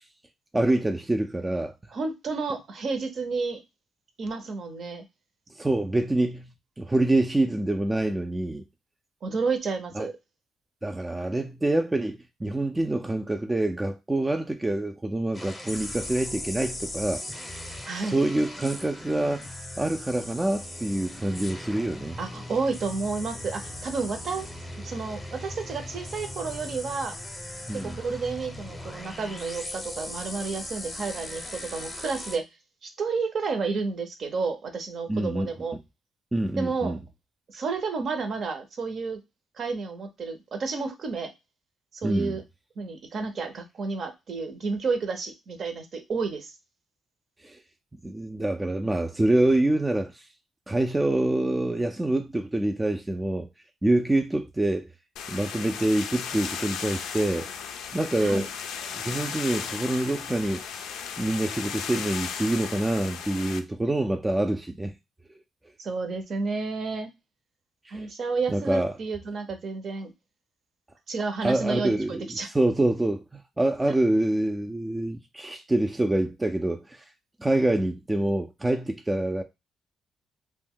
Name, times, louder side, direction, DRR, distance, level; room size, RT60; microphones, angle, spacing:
voice 1, 0.5-1.7 5.6-6.5 6.8-8.6 9.9-10.1 10.8-17.5 17.9-19.4 19.8-22.2 27.7-28.0 35.1-35.5 36.3-37.0 42.0-42.3 47.4-47.6 48.0-50.2 50.7-53.5 53.8-54.9 55.3-57.5 57.9-58.5 58.9-60.6 61.2-64.9 67.9-68.1 68.5-68.9 71.4-77.0 77.4-79.4, right 1 dB, 15° right, 0.3 m, -26 dB
voice 2, 1.9-3.6 4.2-5.0 9.2-10.1 17.8-18.2 22.2-24.5 24.8-27.1 27.8-32.4 32.8-35.8 36.6-37.0 37.5-39.2 39.6-41.3 41.9-42.4 42.8-46.5 58.2-58.5 65.8-67.1 67.9-70.1 71.1-72.5, right 4 dB, 55° right, 0.6 m, -31 dB
sound 1, 15.3-32.4, left 1 dB, 15° left, 0.7 m, -39 dB
sound 2, 55.2-63.6, left 7 dB, 85° left, 0.4 m, -35 dB
2.6 x 2.1 x 3.6 m
cardioid pair, 90°, 0 cm